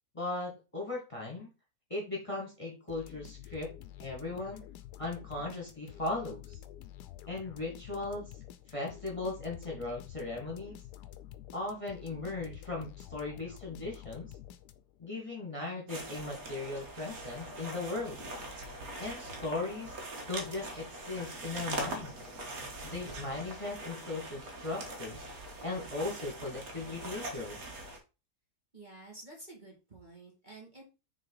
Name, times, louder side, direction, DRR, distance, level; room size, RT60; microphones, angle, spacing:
voice 1, 0.1-1.5 1.9-3.7 4.0-4.6 5.0-6.6 7.3-8.3 8.7-10.8 11.5-14.3 15.0-18.2 19.0-20.0 20.3-22.2 22.8-25.3 25.6-27.6, left 2 dB, 20° left, -2 dB, 2.1 m, -38 dB
sound 1, 2.9-15.1, left 12 dB, 85° left, 1.2 m, -49 dB
sound 2, 15.9-28.0, right 1 dB, 60° right, 1.9 m, -42 dB
voice 2, 28.7-30.8, right 2 dB, 30° right, -3 dB, 2.0 m, -50 dB
6.4 x 3.8 x 4.7 m, 0.30 s
omnidirectional pair, 1.7 m